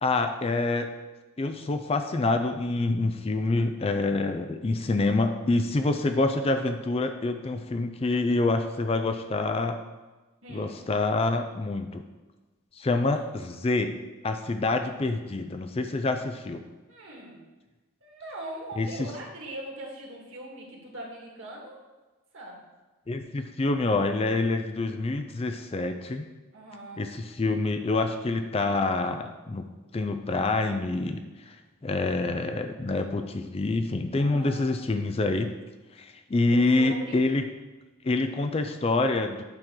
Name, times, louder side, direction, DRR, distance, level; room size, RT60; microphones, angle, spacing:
voice 1, 0.0-0.9 1.4-9.8 10.5-12.0 12.8-14.0 14.2-16.6 18.8-19.1 23.1-26.3 27.0-29.6 29.9-31.6 31.8-35.5 36.0-37.4 38.0-39.4, left 2 dB, 25° left, 6 dB, 0.4 m, -26 dB
voice 2, 10.4-10.8 12.9-13.1 16.9-17.4 18.0-21.8 22.3-22.6 26.5-27.1 34.1-34.7 36.5-37.2, right 1 dB, 65° right, -2 dB, 1.9 m, -41 dB
8.9 x 3.8 x 6.1 m, 1.2 s
head